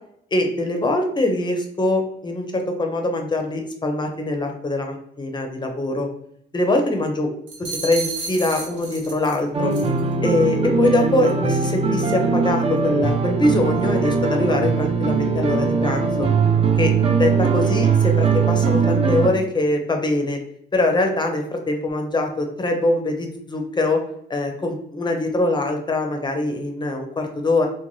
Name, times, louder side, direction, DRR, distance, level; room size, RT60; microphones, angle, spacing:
voice 1, 0.3-6.1 6.5-7.3 7.6-9.7 10.2-16.3 16.8-16.9 17.2-20.4 20.7-24.0 24.3-27.7, left 2 dB, 20° left, 3 dB, 0.6 m, -23 dB
sound 1, 7.5-9.4 9.7-10.0, right 3 dB, 70° right, 0.7 m, -32 dB
sound 2, 9.5-19.3, right 5 dB, 30° right, 0.4 m, -20 dB
2.5 x 2.2 x 3.1 m, 0.72 s
cardioid pair, 90°, 20 cm